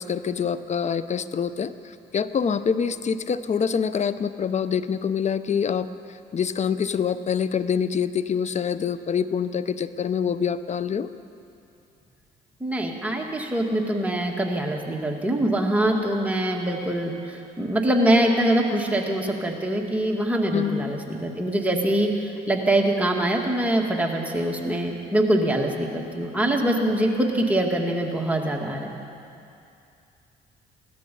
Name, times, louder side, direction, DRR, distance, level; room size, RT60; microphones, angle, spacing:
voice 1, 0.0-1.7 2.1-5.9 6.3-11.1 20.5-20.9, left 7 dB, 40° left, 14 dB, 0.6 m, -25 dB
voice 2, 12.6-29.0, right 1 dB, 10° right, 0 dB, 2.0 m, -24 dB
16.5 x 13.0 x 5.4 m, 2.6 s
supercardioid pair, 75°, 18 cm